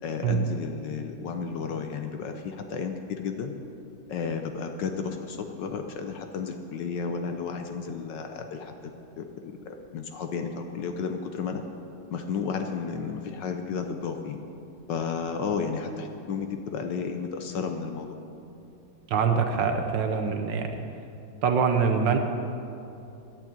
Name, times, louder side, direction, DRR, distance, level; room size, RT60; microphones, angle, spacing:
voice 1, 0.0-3.5 4.1-8.9 9.2-11.6 12.1-14.4 14.9-18.2, left 5 dB, 65° left, 6 dB, 1.2 m, -32 dB
voice 2, 19.1-20.7 21.4-22.2, right 6 dB, 65° right, 5 dB, 1.3 m, -24 dB
10.5 x 8.7 x 8.6 m, 2.7 s
omnidirectional pair, 2.4 m